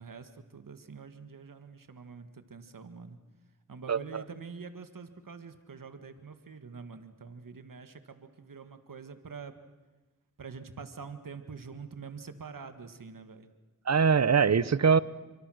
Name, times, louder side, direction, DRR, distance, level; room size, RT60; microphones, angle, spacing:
voice 1, 0.0-3.2 3.7-9.5 10.4-13.5, right 5 dB, 80° right, 9 dB, 1.8 m, -45 dB
voice 2, 3.9-4.2 13.9-15.0, right 6 dB, 55° right, 18 dB, 0.8 m, -23 dB
28.0 x 24.5 x 6.4 m, 1.2 s
wide cardioid pair, 75°, 33 cm